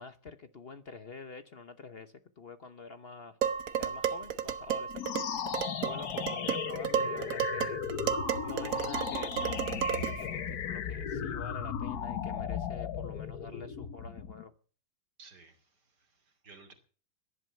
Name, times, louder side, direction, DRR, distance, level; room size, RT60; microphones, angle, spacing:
voice 1, 0.0-3.4 3.8-5.0 5.8-7.8 8.4-14.5, left 4 dB, 45° left, 1.0 m, -47 dB
Dishes pots and pans, 3.4-10.3, right 8 dB, 60° right, 1.2 m, -33 dB
sound 1, 4.9-14.4, left 8 dB, 70° left, 1.5 m, -36 dB
voice 2, 15.2-16.7, right 4 dB, 80° right, 3.4 m, -56 dB
15.5 x 11.0 x 6.8 m
omnidirectional pair, 1.8 m